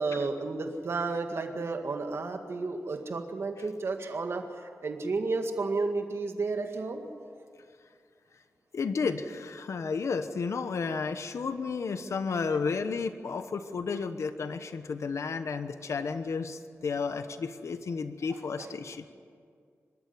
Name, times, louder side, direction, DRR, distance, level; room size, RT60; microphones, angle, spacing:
voice 1, 0.0-4.4 4.8-7.1 18.6-18.7, right 3 dB, 55° right, 5 dB, 2.0 m, -32 dB
voice 2, 8.7-19.0, left 5 dB, 70° left, 9 dB, 1.1 m, -32 dB
25.5 x 13.5 x 9.7 m, 2.1 s
wide cardioid pair, 165°, 5 cm